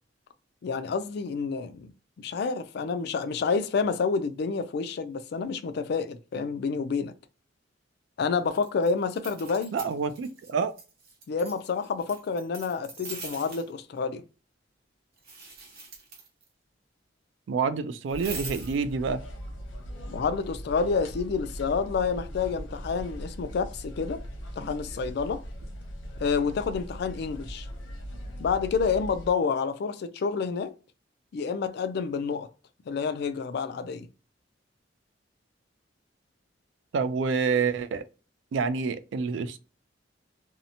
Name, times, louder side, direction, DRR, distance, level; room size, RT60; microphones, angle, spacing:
voice 1, 0.6-7.1 8.2-9.8 11.3-14.2 20.1-24.2 24.6-25.4 26.2-27.7 28.4-30.7 31.3-32.5 32.9-34.1, left 5 dB, 60° left, 0.3 m, -29 dB
sound 1, 8.5-10.5 10.8-13.7 15.2-16.5 18.1-18.8, right 4 dB, 55° right, 0.8 m, -43 dB
voice 2, 9.7-10.7 17.5-19.2 36.9-38.0 38.5-39.6, right 5 dB, 70° right, 0.3 m, -27 dB
sound 2, 18.1-29.3, equal, 85° left, 0.7 m, -40 dB
2.7 x 2.0 x 2.6 m
head